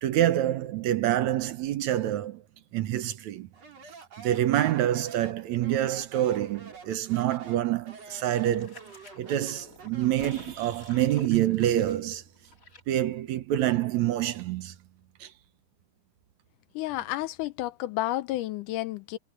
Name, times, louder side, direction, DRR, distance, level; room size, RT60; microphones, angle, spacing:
voice 1, 0.0-2.4 2.7-3.5 4.2-8.8 9.2-12.2 12.9-14.7 15.2-15.3, right 12 dB, 70° right, 2.0 m, -26 dB
Speech, 3.5-10.3, right 4 dB, 50° right, 5.4 m, -48 dB
sound 1, 8.0-12.8 13.1-13.2, left 4 dB, 30° left, 2.5 m, -49 dB
voice 2, 16.7-19.2, left 15 dB, 85° left, 2.2 m, -31 dB
omnidirectional pair, 3.7 m